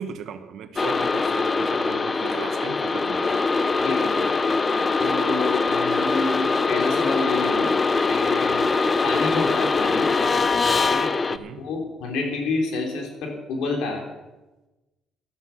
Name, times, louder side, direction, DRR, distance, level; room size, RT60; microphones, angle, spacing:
voice 1, 0.0-3.3 11.3-11.6, right 7 dB, 70° right, 9 dB, 1.3 m, -36 dB
sound 1, 0.8-11.4, left 4 dB, 30° left, 0.7 m, -22 dB
voice 2, 3.8-4.5 5.0-7.7 8.1-8.7 9.0-10.1 10.9-11.1 11.6-14.0, left 3 dB, 80° left, 2 dB, 3.3 m, -29 dB
13.0 x 12.5 x 5.8 m, 1.1 s
cardioid pair, 90°, 0 cm